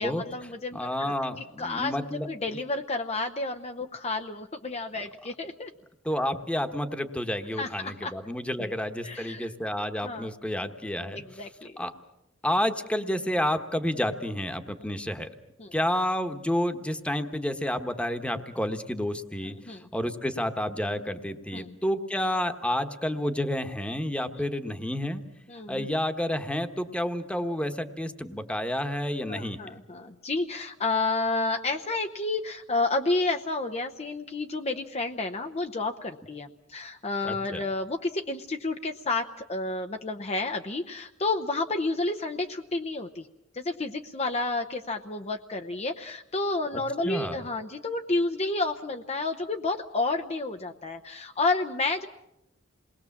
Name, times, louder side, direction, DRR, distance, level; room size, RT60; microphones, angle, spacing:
voice 1, 0.0-1.1 1.6-2.0 2.3-5.7 7.6-8.1 8.6-8.7 9.0-9.5 10.0-10.3 11.1-11.8 15.6-15.7 19.4-19.9 21.5-21.7 25.5-25.9 29.3-43.3 43.5-52.1, left 3 dB, 35° left, 5 dB, 0.8 m, -30 dB
voice 2, 0.7-2.3 6.0-11.4 11.8-11.9 12.4-15.3 15.7-25.2 25.7-29.6 37.3-37.6 47.0-47.4, left 1 dB, 5° left, 8 dB, 1.3 m, -30 dB
28.0 x 20.5 x 7.3 m, 0.87 s
head